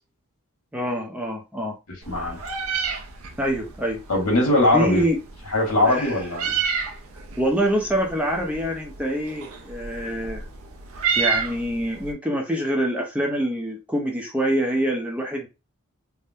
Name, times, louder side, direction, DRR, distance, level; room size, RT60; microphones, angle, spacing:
voice 1, 0.7-1.8 2.1-2.3 3.4-4.0 4.7-5.2 5.9-6.2 7.4-10.5 11.2-15.5, equal, 5° right, 0.5 m, -25 dB
Meow, 2.0-12.1, right 6 dB, 75° right, 0.6 m, -31 dB
voice 2, 2.1-2.4 4.1-5.1 5.5-6.5, left 2 dB, 80° left, 1.5 m, -20 dB
3.4 x 2.1 x 2.7 m
head